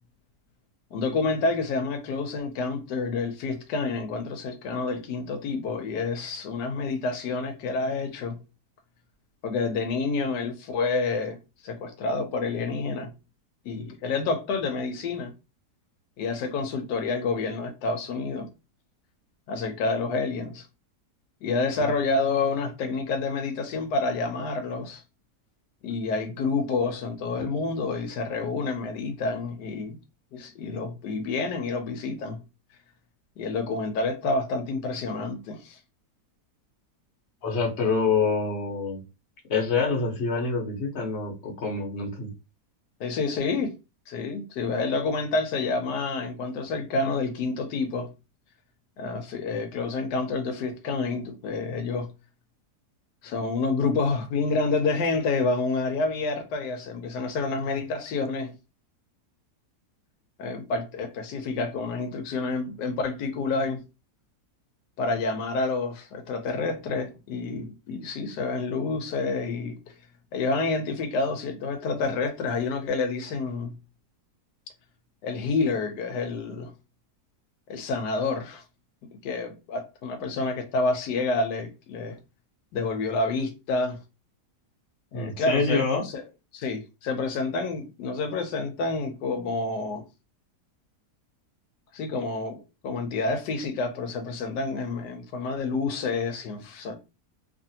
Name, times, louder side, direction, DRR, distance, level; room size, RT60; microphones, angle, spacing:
voice 1, 0.9-8.4 9.4-11.4 11.6-13.1 13.6-15.3 16.2-18.5 19.5-20.7 21.4-25.0 25.8-30.0 30.3-32.4 33.4-35.8 43.0-43.7 44.1-48.1 49.0-52.1 53.2-58.5 60.4-63.8 65.0-69.8 70.3-73.7 75.2-76.7 77.7-78.6 79.2-82.2 82.7-84.0 85.1-86.2 86.5-90.0 91.9-97.0, left 3 dB, 85° left, 1.2 m, -28 dB
voice 2, 37.4-39.0 39.5-42.3 85.1-86.0, left 4 dB, 50° left, 1.0 m, -26 dB
3.0 x 2.5 x 2.7 m
omnidirectional pair, 1.8 m